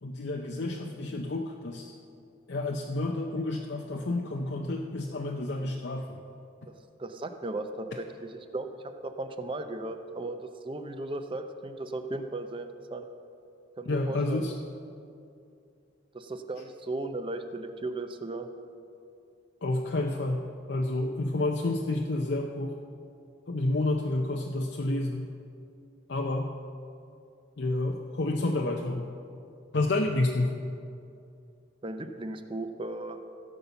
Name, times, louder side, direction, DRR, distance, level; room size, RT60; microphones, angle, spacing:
voice 1, 0.0-1.9 2.5-6.2 13.9-14.5 19.6-22.8 23.5-25.3 26.1-26.5 27.6-29.1 29.7-30.6, left 2 dB, 60° left, 1 dB, 0.7 m, -29 dB
voice 2, 7.0-8.7 9.0-13.1 13.8-14.5 16.1-18.5 31.8-33.2, right 2 dB, 25° right, 8 dB, 0.6 m, -36 dB
16.0 x 5.6 x 6.9 m, 2.5 s
head